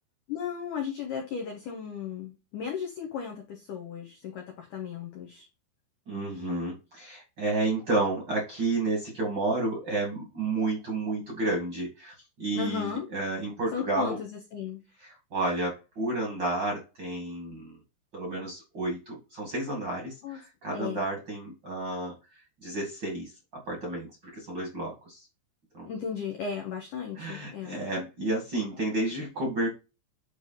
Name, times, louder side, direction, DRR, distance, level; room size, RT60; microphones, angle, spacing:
voice 1, 0.3-5.5 12.5-13.1 13.7-14.8 20.2-20.4 20.7-21.0 25.9-27.9, left 7 dB, 75° left, 1 dB, 1.9 m, -35 dB
voice 2, 6.1-14.2 15.0-17.8 18.1-22.1 22.6-25.2 25.7-25.9 27.2-29.7, right 2 dB, 40° right, -1 dB, 1.7 m, -31 dB
9.6 x 3.4 x 4.1 m, 0.28 s
omnidirectional pair, 5.3 m